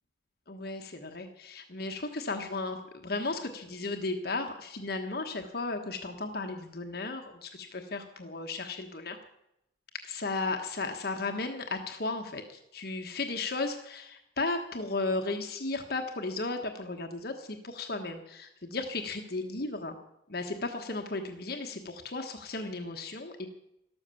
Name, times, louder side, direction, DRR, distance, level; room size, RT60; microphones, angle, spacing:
voice 1, 0.5-9.2 10.0-20.0 20.3-23.5, left 3 dB, 55° left, 4 dB, 1.3 m, -35 dB
13.0 x 13.0 x 7.0 m, 0.82 s
head